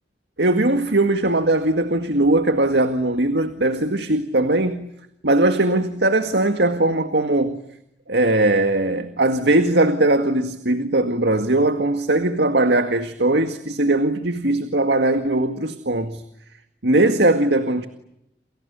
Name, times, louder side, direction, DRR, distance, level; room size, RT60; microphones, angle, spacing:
voice 1, 0.4-4.9 5.2-7.6 8.1-16.2 16.8-17.9, right 2 dB, 80° right, 2.0 m, -19 dB
29.5 x 28.5 x 7.0 m
head